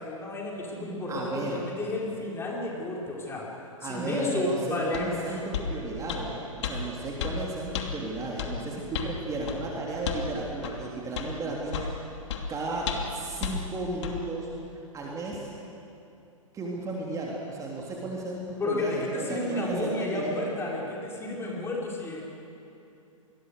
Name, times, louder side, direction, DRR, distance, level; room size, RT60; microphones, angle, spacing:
voice 1, 0.0-3.4 3.8-5.2 18.6-22.3, left 2 dB, 15° left, -3 dB, 4.9 m, -31 dB
voice 2, 1.1-1.6 3.8-12.1 12.5-14.5 14.9-15.5 16.5-20.5, right 2 dB, 20° right, -2 dB, 3.3 m, -34 dB
sound 1, 4.9-5.1 5.5-5.7 6.1-6.2 6.6-6.8 7.2-7.4 7.7-7.9 8.4-8.5 8.9-9.1 9.5-9.6 10.0-10.3 10.6-10.8 11.2-11.3 11.7-11.9 12.3-12.4 12.9-13.1 13.4-13.6 14.0-14.2, left 8 dB, 55° left, 2.8 m, -32 dB
27.0 x 21.0 x 6.8 m, 2.7 s
figure-of-eight pair, 115°, 17 cm